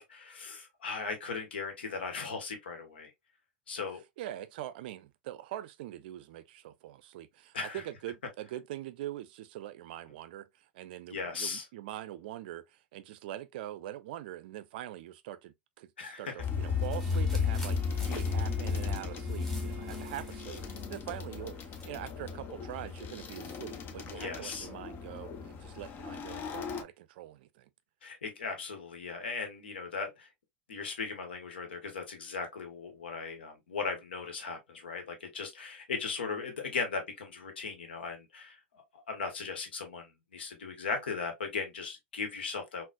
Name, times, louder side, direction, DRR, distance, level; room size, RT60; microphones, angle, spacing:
voice 1, 0.0-3.1 3.7-4.0 7.5-7.8 11.1-11.6 16.0-16.3 24.1-24.7 28.0-30.3 30.7-42.8, left 4 dB, 80° left, 0.9 m, -38 dB
voice 2, 4.2-27.7, right 13 dB, 65° right, 0.4 m, -43 dB
Bowed string instrument, 16.3-21.1, right 5 dB, 25° right, 0.7 m, -50 dB
sound 1, 16.4-26.8, left 5 dB, 35° left, 0.6 m, -35 dB
sound 2, 16.8-21.9, equal, 5° left, 1.2 m, -51 dB
3.9 x 2.1 x 2.2 m
hypercardioid pair, 90°, 6 cm